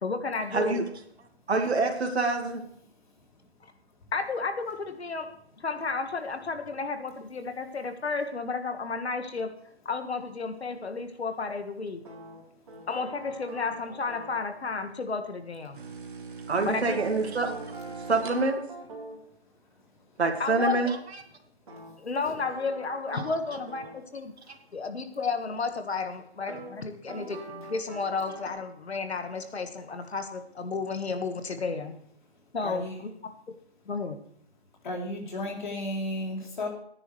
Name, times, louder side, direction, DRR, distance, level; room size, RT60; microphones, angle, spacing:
voice 1, 0.0-0.9 3.6-3.7 4.1-5.3 5.6-9.5 9.9-12.0 12.9-15.8 16.6-17.0 20.4-21.0 22.0-24.3 24.7-31.9 32.5-33.1 33.9-34.2, left 4 dB, 75° left, 7 dB, 1.8 m, -32 dB
voice 2, 0.5-0.8 1.5-2.6 16.5-17.5 18.1-18.6 20.2-21.0 23.1-23.2, right 3 dB, 75° right, 3 dB, 2.1 m, -26 dB
sound 1, 12.0-14.4 16.9-19.2 21.7-24.0 26.5-26.7 27.1-28.5, right 2 dB, 35° right, 3.7 m, -44 dB
sound 2, 15.7-18.8, right 5 dB, 50° right, 1.7 m, -42 dB
voice 3, 32.6-33.0 34.8-36.7, left 1 dB, 45° left, -1 dB, 3.4 m, -33 dB
17.0 x 9.9 x 3.3 m, 0.67 s
hypercardioid pair, 175°, 32 cm